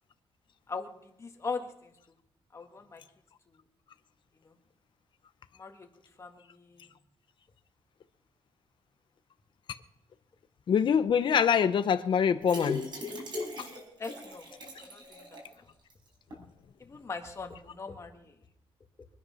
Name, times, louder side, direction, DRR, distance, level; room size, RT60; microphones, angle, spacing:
voice 1, 1.2-1.9 2.5-3.0 3.5-3.6 4.4-4.5 5.6-5.9 6.2-6.9 14.0-14.5 14.8-15.7 16.8-18.3, left 4 dB, 25° left, 1.8 m, -40 dB
voice 2, 10.7-12.8 13.6-13.7, left 7 dB, 50° left, 0.8 m, -24 dB
sound 1, 12.4-15.5 15.9-16.0 16.3-16.4, left 2 dB, 45° right, 4.9 m, -38 dB
23.5 x 10.5 x 5.7 m
wide cardioid pair, 175°, 11 cm